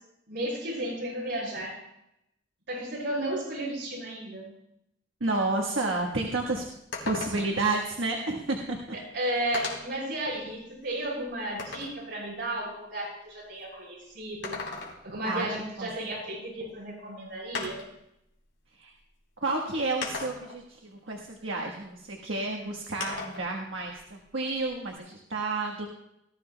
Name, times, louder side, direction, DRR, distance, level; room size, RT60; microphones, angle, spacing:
voice 1, 0.3-1.8 2.7-4.5 9.1-14.6 15.0-17.9, right 1 dB, 65° right, -5 dB, 6.0 m, -33 dB
voice 2, 5.2-6.6 7.0-8.8 15.2-15.5 15.8-15.9 18.8-18.9 19.4-25.9, right 2 dB, 85° right, 0 dB, 1.4 m, -30 dB
sound 1, 6.0-6.1 6.4-6.5 6.9-7.7 8.7-8.8 9.5-10.0 10.6-12.0 14.2-15.2 16.7-16.8 17.5-18.0 19.0-19.1 20.0-20.6 23.0-23.5 23.8-25.0, left 4 dB, 75° left, 3.2 m, -37 dB
19.0 x 13.5 x 2.3 m, 0.81 s
head